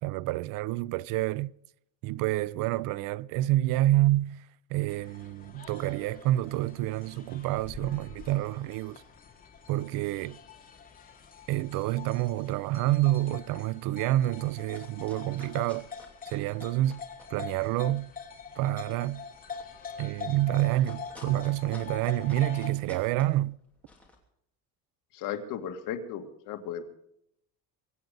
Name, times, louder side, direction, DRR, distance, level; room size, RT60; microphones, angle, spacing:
voice 1, 0.0-1.5 2.0-9.0 9.7-10.4 11.5-15.9 16.3-17.0 17.3-18.1 18.6-19.3 20.0-23.6, right 15 dB, 65° right, 0.5 m, -28 dB
sound 1, 4.9-22.7, left 6 dB, 25° left, 2.3 m, -45 dB
sound 2, 13.8-14.1 14.4-17.4 17.7-24.2, left 2 dB, 5° left, 2.8 m, -54 dB
voice 2, 25.1-26.8, left 8 dB, 65° left, 2.1 m, -35 dB
24.0 x 9.0 x 5.3 m
cardioid pair, 165°, 36 cm